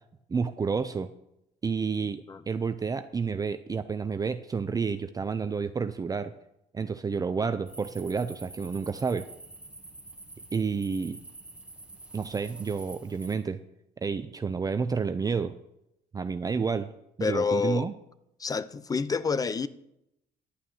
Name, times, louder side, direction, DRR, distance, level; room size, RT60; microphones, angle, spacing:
voice 1, 0.3-1.1 1.6-6.3 6.7-9.3 10.5-11.2 12.1-13.6 14.0-15.5 16.1-16.9 17.2-17.9, right 5 dB, 20° right, 0.5 m, -30 dB
sound 1, 7.7-13.4, right 2 dB, 5° right, 2.0 m, -48 dB
voice 2, 17.2-17.9 18.4-19.7, left 5 dB, 20° left, 0.6 m, -28 dB
11.5 x 5.8 x 8.6 m
cardioid pair, 110°, 17 cm